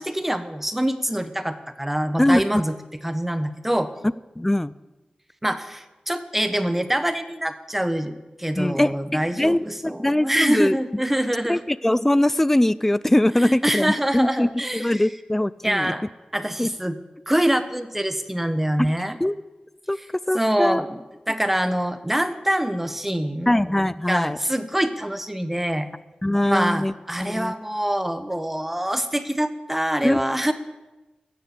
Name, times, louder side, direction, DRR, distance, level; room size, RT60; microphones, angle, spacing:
voice 1, 0.0-2.7 3.0-3.9 5.4-11.6 13.4-15.0 15.6-16.0 16.3-17.0 17.3-19.2 20.3-23.5 24.1-25.9 26.4-30.5, right 1 dB, 10° right, 9 dB, 0.9 m, -25 dB
voice 2, 2.2-2.6 4.4-4.7 8.6-10.8 11.5-15.9 16.6-16.7 18.8-18.9 19.2-19.4 19.9-20.0 20.3-20.8 23.5-24.4 26.2-26.9 27.2-27.5 30.0-30.2, left 1 dB, 10° left, 18 dB, 0.3 m, -21 dB
14.0 x 6.7 x 8.2 m, 1.1 s
wide cardioid pair, 95°, 3 cm